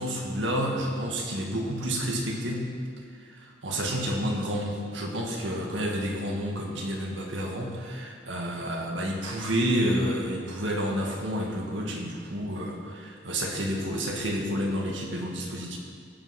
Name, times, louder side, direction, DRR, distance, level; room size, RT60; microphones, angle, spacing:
voice 1, 0.0-2.6 3.3-15.8, equal, 90° right, 0 dB, 1.8 m, -30 dB
15.5 x 5.5 x 5.8 m, 2.2 s
head